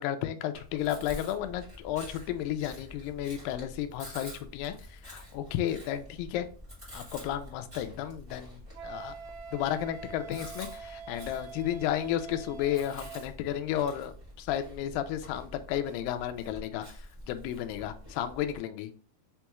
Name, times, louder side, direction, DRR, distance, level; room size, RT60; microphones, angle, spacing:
voice 1, 0.0-6.5 6.9-9.1 9.5-18.9, left 11 dB, 85° left, 8 dB, 2.0 m, -33 dB
Chewing mastication, 0.5-18.6, left 1 dB, 20° right, 0.7 m, -48 dB
Wind instrument woodwind instrument, 8.7-13.3, right 6 dB, 85° right, 1.9 m, -45 dB
6.1 x 2.3 x 3.0 m, 0.41 s
omnidirectional pair, 4.4 m